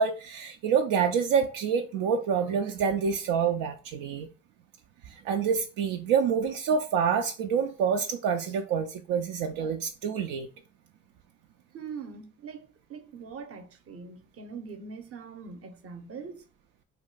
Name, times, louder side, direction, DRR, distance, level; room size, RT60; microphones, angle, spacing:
voice 1, 0.0-4.3 5.1-10.5, right 6 dB, 70° right, 0.5 m, -27 dB
voice 2, 11.7-16.4, right 5 dB, 40° right, 0.7 m, -42 dB
2.5 x 2.2 x 3.8 m
hypercardioid pair, 60°, 34 cm